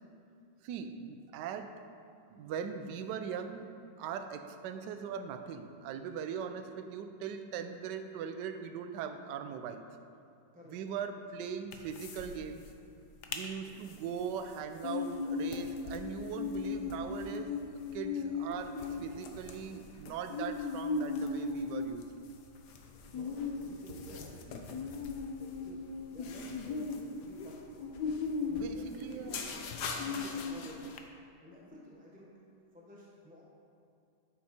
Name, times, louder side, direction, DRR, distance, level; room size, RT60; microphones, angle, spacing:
voice 1, 0.6-1.8 2.3-3.6 4.0-10.0 10.7-12.6 13.3-22.0 28.5-29.5, right 7 dB, 70° right, 8 dB, 1.2 m, -40 dB
sound 1, 11.7-12.3 12.6-12.7 13.0-13.4 13.9-31.0, left 4 dB, 65° left, 1.3 m, -38 dB
voice 2, 13.4-13.8 22.9-31.0 31.4-32.3 32.7-33.4, equal, 5° right, -4 dB, 0.8 m, -53 dB
9.7 x 8.4 x 4.3 m, 2.5 s
omnidirectional pair, 2.1 m